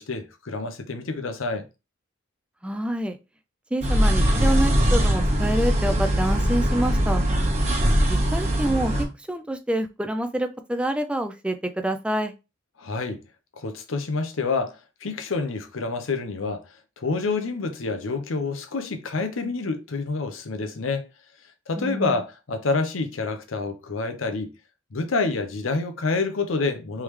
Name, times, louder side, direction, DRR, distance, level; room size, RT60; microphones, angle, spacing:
voice 1, 0.0-1.7 12.8-13.2 13.6-16.6 17.0-21.1 21.7-24.5 24.9-27.0, left 3 dB, 85° left, 0.7 m, -28 dB
voice 2, 2.6-3.2 3.7-7.2 8.1-12.3 21.8-22.2, right 1 dB, 5° right, 0.3 m, -27 dB
sound 1, 3.8-9.0, equal, 35° right, 1.2 m, -21 dB
3.5 x 3.2 x 3.1 m
head